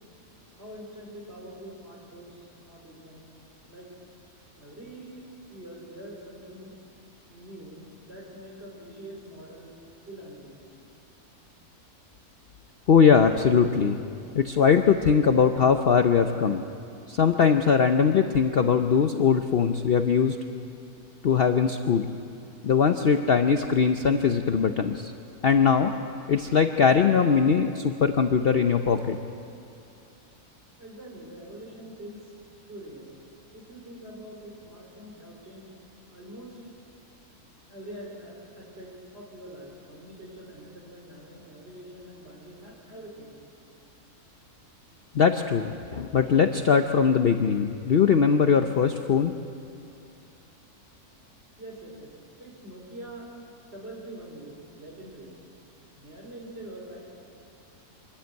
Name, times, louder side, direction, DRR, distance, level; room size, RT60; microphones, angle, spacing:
voice 1, 0.6-3.3 3.7-3.9 4.6-5.2 5.5-6.7 7.3-9.7 10.1-10.6 30.8-32.2 32.7-33.1 33.5-35.7 36.1-36.6 37.7-43.4 51.6-52.1 52.4-55.3 56.0-57.0, right 1 dB, 40° right, -2 dB, 5.2 m, -44 dB
voice 2, 12.9-14.0 14.3-16.6 17.1-20.4 21.2-22.1 22.6-25.1 25.4-25.9 26.3-29.2 45.1-49.3, left 6 dB, 50° left, 7 dB, 0.8 m, -21 dB
26.0 x 13.0 x 9.3 m, 2.6 s
omnidirectional pair, 1.6 m